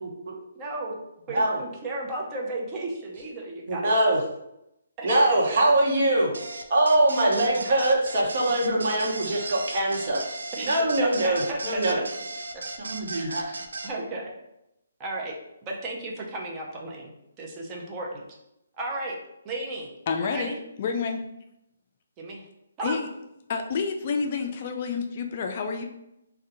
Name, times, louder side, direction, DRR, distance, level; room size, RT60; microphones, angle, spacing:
voice 1, 0.0-0.3 1.3-1.6 3.7-4.2 5.0-6.3 6.7-10.2 10.6-12.0 12.8-13.6, right 1 dB, 45° right, -2 dB, 0.9 m, -23 dB
voice 2, 0.5-1.0 1.3-4.0 5.0-5.6 10.6-11.8 13.1-13.4 13.8-14.3 15.0-15.3 15.7-17.1 17.4-18.2 18.8-19.2 19.4-19.9 20.2-20.6 22.2-22.5 22.8-23.0, right 2 dB, 20° right, -2 dB, 0.5 m, -34 dB
sound 1, 6.3-13.9, right 2 dB, 80° right, 0.4 m, -36 dB
voice 3, 20.1-20.5 20.8-21.2 22.8-23.1 23.5-25.8, left 5 dB, 40° left, 4 dB, 0.3 m, -28 dB
2.6 x 2.2 x 3.8 m, 0.84 s
hypercardioid pair, 160°, 0 cm